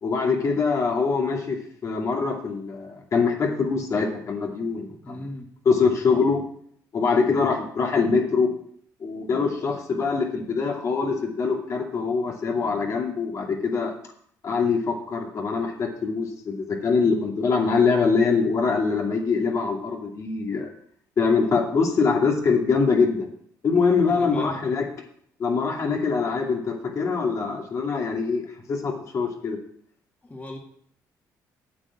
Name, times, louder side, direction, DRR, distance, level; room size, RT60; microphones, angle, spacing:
voice 1, 0.0-1.6 1.8-5.2 5.6-6.4 6.9-8.5 9.0-13.9 14.4-20.7 21.2-23.3 23.6-24.9 25.4-28.4 28.7-29.6, left 4 dB, 50° left, 0 dB, 2.5 m, -23 dB
voice 2, 5.0-5.5 24.1-24.6 30.2-30.6, left 1 dB, 20° left, 0 dB, 2.4 m, -37 dB
8.7 x 7.5 x 7.3 m, 0.64 s
cardioid pair, 100°, 7 cm